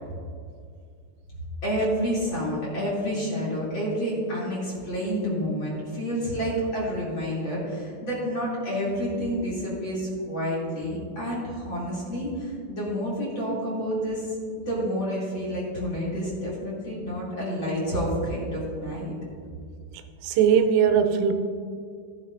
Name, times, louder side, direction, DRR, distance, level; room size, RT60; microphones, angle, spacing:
voice 1, 1.6-19.2, equal, 30° left, -7 dB, 2.7 m, -29 dB
voice 2, 19.9-21.3, right 8 dB, 85° right, 7 dB, 3.4 m, -21 dB
15.0 x 9.7 x 2.6 m, 2.2 s
omnidirectional pair, 5.8 m